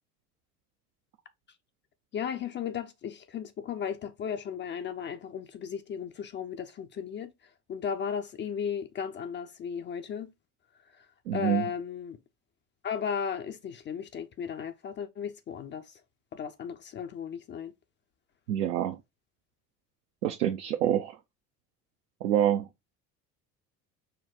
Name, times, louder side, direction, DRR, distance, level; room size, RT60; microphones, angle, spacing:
voice 1, 2.1-7.3 7.7-10.3 10.9-11.1 11.3-12.2 12.8-16.0 16.3-17.7, left 7 dB, 25° left, 0.4 m, -35 dB
voice 2, 11.3-11.6 18.5-19.0 20.2-21.1 22.2-22.7, right 11 dB, 75° right, 0.5 m, -26 dB
4.3 x 2.1 x 3.7 m
hypercardioid pair, 65°, 46 cm